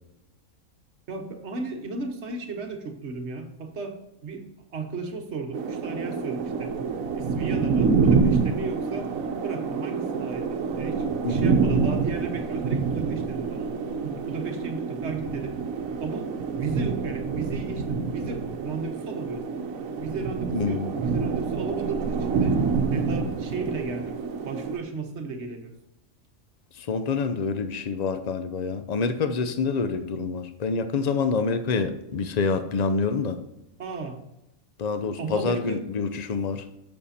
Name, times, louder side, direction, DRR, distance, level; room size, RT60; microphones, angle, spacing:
voice 1, 1.1-4.5 4.7-6.7 7.1-9.1 9.4-13.7 14.0-15.6 16.0-16.3 16.6-19.5 20.0-22.6 22.9-24.2 24.4-25.7 33.8-34.2 35.2-35.9, right 4 dB, 55° right, 5 dB, 1.3 m, -34 dB
sound 1, 5.5-24.8, right 5 dB, 75° right, 1.2 m, -27 dB
voice 2, 20.5-20.9 26.8-33.4 34.8-36.6, left 4 dB, 45° left, 10 dB, 0.5 m, -27 dB
8.4 x 6.6 x 4.2 m, 0.88 s
omnidirectional pair, 1.4 m